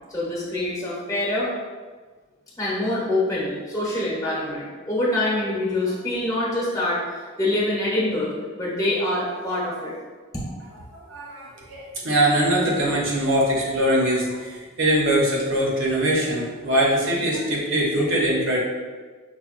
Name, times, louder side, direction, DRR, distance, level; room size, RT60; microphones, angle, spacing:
voice 1, 0.1-1.5 2.6-7.0 7.4-8.3 8.6-9.9, left 1 dB, 15° left, -7 dB, 0.9 m, -25 dB
voice 2, 10.9-18.6, right 1 dB, 60° right, -3 dB, 0.8 m, -22 dB
5.6 x 2.3 x 2.5 m, 1.4 s
head